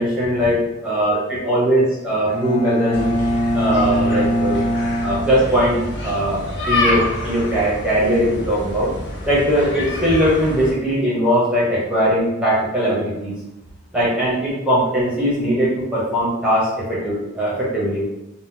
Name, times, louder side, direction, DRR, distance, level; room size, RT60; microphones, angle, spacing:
voice 1, 0.0-3.0 3.5-4.6 5.0-5.8 6.0-8.9 9.2-13.3 13.9-18.0, equal, 5° right, -8 dB, 0.7 m, -20 dB
Bowed string instrument, 2.3-6.1, equal, 85° left, 0.4 m, -22 dB
sound 1, 2.9-10.7, left 1 dB, 55° left, 0.8 m, -27 dB
2.8 x 2.1 x 3.6 m, 0.95 s
head